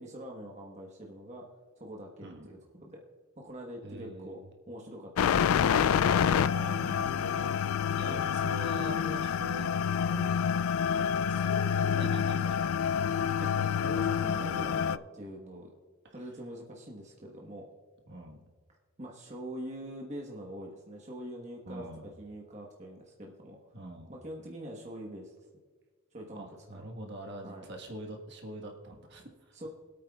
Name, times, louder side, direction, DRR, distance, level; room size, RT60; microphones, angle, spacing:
voice 1, 0.0-1.5 1.8-3.0 3.4-4.4 4.7-6.0 8.1-8.6 13.6-15.7 16.1-17.7 19.0-23.6 24.1-25.3 26.1-26.9 27.4-27.6 29.5-29.7, equal, 30° right, -1 dB, 1.2 m, -44 dB
voice 2, 3.8-4.4 6.5-7.6 7.9-9.7 10.1-10.3 10.9-13.0 13.4-13.7 13.9-14.5 18.1-18.4 21.7-22.1 23.7-24.1 26.3-29.5, right 1 dB, 50° right, 2 dB, 1.4 m, -43 dB
sound 1, 5.2-15.0, left 8 dB, 75° left, 0.3 m, -28 dB
25.0 x 8.7 x 2.4 m, 1.5 s
head